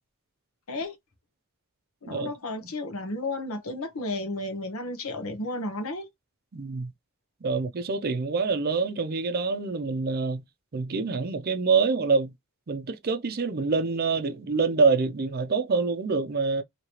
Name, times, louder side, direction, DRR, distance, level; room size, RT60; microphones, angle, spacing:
voice 1, 2.0-6.1, left 2 dB, 75° left, 0.9 m, -33 dB
voice 2, 6.5-6.9 7.4-10.4 10.7-12.3 12.7-16.6, right 4 dB, 45° right, 0.5 m, -26 dB
3.1 x 2.8 x 2.8 m
head